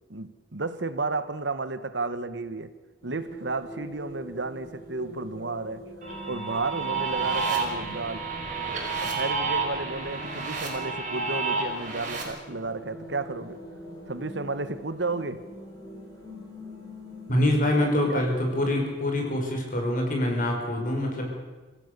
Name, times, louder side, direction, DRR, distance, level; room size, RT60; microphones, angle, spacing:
voice 1, 0.1-2.7 3.0-5.8 6.3-8.3 9.0-13.6 14.1-15.4 18.1-18.2, right 3 dB, 75° right, 13 dB, 1.3 m, -32 dB
sound 1, 3.0-19.4, left 1 dB, 20° left, 7.1 m, -44 dB
sound 2, 6.0-12.2, right 4 dB, 45° right, 5.3 m, -30 dB
voice 2, 17.3-21.3, left 1 dB, 45° left, 1 dB, 5.6 m, -25 dB
26.0 x 16.0 x 6.8 m, 1.3 s
head